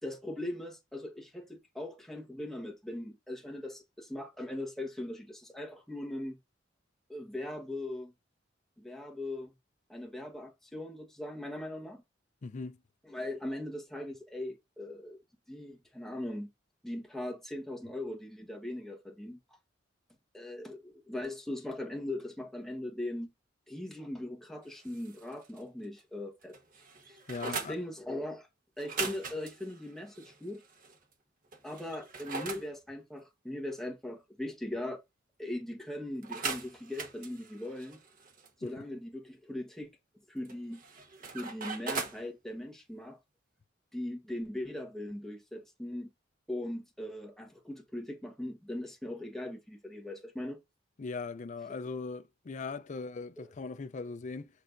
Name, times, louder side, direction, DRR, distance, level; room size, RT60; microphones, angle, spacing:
voice 1, 0.0-6.4 7.1-8.1 8.8-9.5 9.9-12.0 13.0-15.2 15.5-16.5 16.8-19.4 20.3-23.3 23.7-26.6 27.1-27.2 27.4-28.5 28.8-30.6 31.6-35.0 35.4-38.0 38.6-39.9 40.3-40.8 41.2-43.2 43.9-46.1 46.5-50.6 53.4-53.5, left 1 dB, ahead, 1.2 m, -40 dB
voice 2, 12.4-12.8 27.3-27.7 51.0-54.5, left 4 dB, 40° left, 0.4 m, -39 dB
sound 1, 24.7-25.6 26.0-26.1 26.4-27.8 28.8-31.0 31.5-32.7 36.2-38.5 40.5-42.2, right 4 dB, 45° right, 1.2 m, -40 dB
6.6 x 6.1 x 2.6 m
head